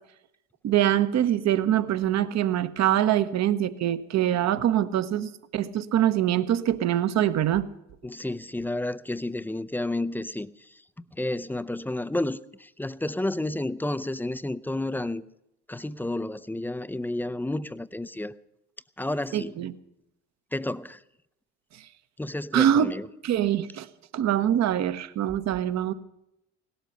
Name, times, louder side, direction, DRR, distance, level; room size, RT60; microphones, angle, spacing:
voice 1, 0.6-7.7 19.3-19.7 22.5-22.9 23.2-23.9 24.1-25.9, right 11 dB, 50° right, 1.0 m, -24 dB
voice 2, 8.0-10.5 11.2-15.2 15.7-18.3 19.0-19.5 20.5-21.0 22.2-23.1, left 1 dB, 5° left, 0.5 m, -31 dB
17.5 x 12.5 x 6.6 m
hypercardioid pair, 70°, 35 cm